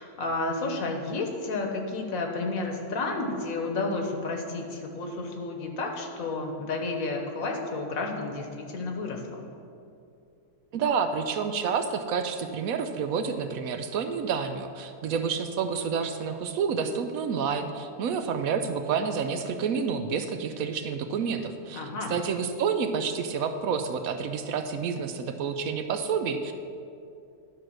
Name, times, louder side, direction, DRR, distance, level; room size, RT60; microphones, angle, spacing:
voice 1, 0.0-9.5 21.7-22.1, left 3 dB, 65° left, 3 dB, 1.4 m, -31 dB
voice 2, 10.7-26.5, right 6 dB, 70° right, 8 dB, 1.0 m, -29 dB
11.0 x 4.6 x 6.3 m, 2.5 s
omnidirectional pair, 1.6 m